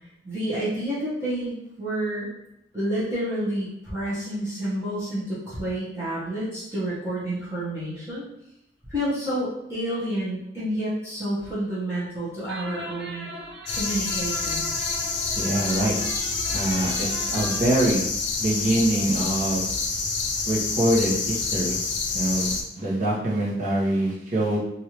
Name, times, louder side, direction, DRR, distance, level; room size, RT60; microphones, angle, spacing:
voice 1, 0.2-2.3 2.7-8.3 8.9-13.3 13.7-14.7, right 1 dB, 15° right, -12 dB, 1.0 m, -29 dB
sound 1, 12.5-17.8, right 1 dB, 70° right, 0.5 m, -38 dB
sound 2, 13.7-22.6, left 4 dB, 80° left, 0.6 m, -28 dB
voice 2, 15.4-16.0 16.5-18.0 18.4-19.6 20.5-21.8 22.1-24.6, right 1 dB, 45° right, -6 dB, 1.0 m, -24 dB
3.2 x 2.7 x 2.9 m, 0.80 s
head